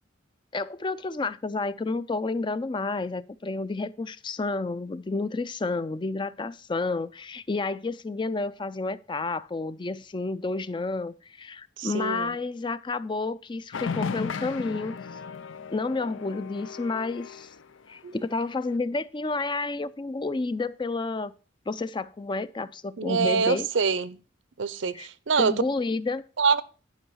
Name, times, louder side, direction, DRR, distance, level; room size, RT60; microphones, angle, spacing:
voice 1, 0.5-15.0 15.7-17.5 17.9-21.3 21.7-23.7 24.9-25.1 25.4-26.2, left 3 dB, 25° left, 0.4 m, -30 dB
voice 2, 11.8-12.3 18.0-18.1 23.0-24.2 24.6-25.5 26.4-26.6, right 5 dB, 80° right, 0.7 m, -25 dB
sound 1, 13.7-18.0 18.5-18.8, left 5 dB, 85° left, 0.6 m, -36 dB
10.5 x 5.5 x 6.1 m
head